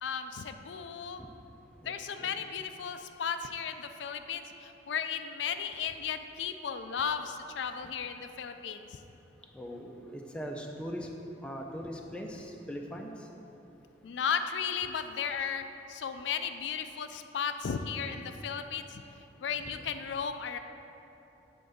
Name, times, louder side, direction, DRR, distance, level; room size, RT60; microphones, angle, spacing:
voice 1, 0.0-1.2 1.8-8.8 14.0-19.0 19.4-20.6, left 7 dB, 80° left, 8 dB, 0.4 m, -35 dB
voice 2, 1.8-2.4 9.5-11.1 11.4-13.1 19.8-19.9, equal, 5° left, 1 dB, 0.5 m, -40 dB
7.7 x 3.8 x 6.5 m, 2.9 s
head